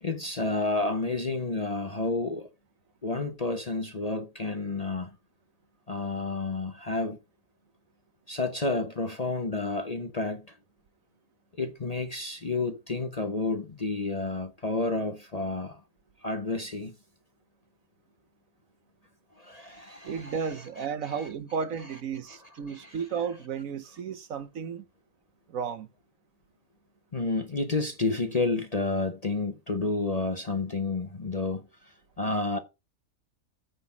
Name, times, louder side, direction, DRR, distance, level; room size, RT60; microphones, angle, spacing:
voice 1, 0.0-2.5 3.0-5.1 5.9-7.2 8.3-10.6 11.6-15.8 16.2-16.9 19.4-21.3 22.3-22.4 22.7-23.0 27.1-32.6, left 3 dB, 30° left, 0.8 m, -30 dB
voice 2, 20.0-24.8 25.5-25.9, right 6 dB, 65° right, 1.2 m, -33 dB
9.3 x 4.0 x 7.3 m
omnidirectional pair, 1.6 m